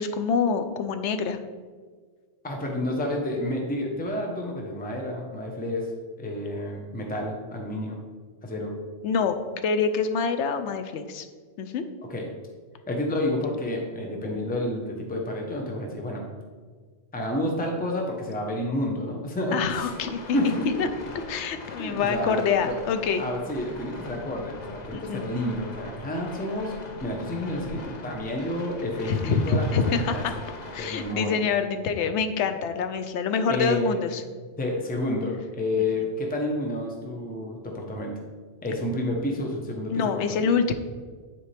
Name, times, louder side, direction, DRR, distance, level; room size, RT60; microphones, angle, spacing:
voice 1, 0.0-1.4 9.0-9.4 9.6-11.3 11.6-11.9 19.5-20.4 20.8-20.9 21.3-23.2 24.9-25.3 29.1-30.3 30.7-34.2 39.9-40.7, left 5 dB, 70° left, 8 dB, 0.9 m, -26 dB
voice 2, 2.4-5.9 6.2-8.0 8.4-8.7 12.1-12.3 12.9-16.2 17.1-19.9 20.3-20.8 21.8-22.8 23.2-30.3 30.8-31.4 33.5-34.0 34.6-38.2 38.6-40.3, left 1 dB, 10° left, 1 dB, 0.8 m, -30 dB
sound 1, 19.7-31.1, left 3 dB, 45° left, 0.6 m, -41 dB
10.0 x 4.3 x 3.3 m, 1.5 s
omnidirectional pair, 1.3 m